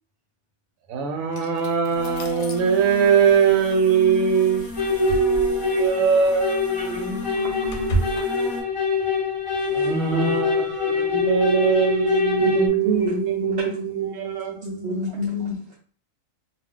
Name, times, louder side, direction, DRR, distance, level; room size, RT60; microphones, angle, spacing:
voice 1, 0.9-6.6 9.7-15.1, right 6 dB, 85° right, 1.0 m, -22 dB
sound 1, 1.3-2.6 4.6-5.7 6.3-6.4 6.8-8.2, right 2 dB, 70° left, 0.9 m, -31 dB
sound 2, 1.9-8.6, left 1 dB, 20° left, 1.0 m, -36 dB
sound 3, 4.8-12.7, left 5 dB, 40° left, 0.4 m, -25 dB
voice 2, 6.7-7.3 9.6-10.6 10.9-11.3 12.4-15.8, equal, 65° right, 0.8 m, -29 dB
voice 3, 7.4-8.5 10.9-11.7 13.5-13.7 14.1-14.6, right 1 dB, 35° right, 0.5 m, -41 dB
2.4 x 2.0 x 3.6 m
omnidirectional pair, 1.4 m